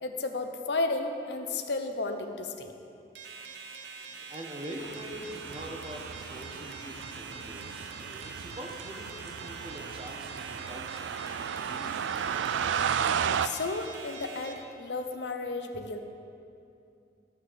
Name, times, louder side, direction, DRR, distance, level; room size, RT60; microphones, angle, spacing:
voice 1, 0.0-2.7 13.4-16.0, left 3 dB, 70° left, 6 dB, 0.8 m, -33 dB
sound 1, 3.1-14.5, right 4 dB, 75° right, 0.9 m, -44 dB
voice 2, 4.1-12.7, right 1 dB, 30° right, 1 dB, 1.1 m, -44 dB
sound 2, 4.8-13.5, right 7 dB, 90° right, 0.4 m, -34 dB
12.0 x 6.3 x 6.8 m, 2.6 s
head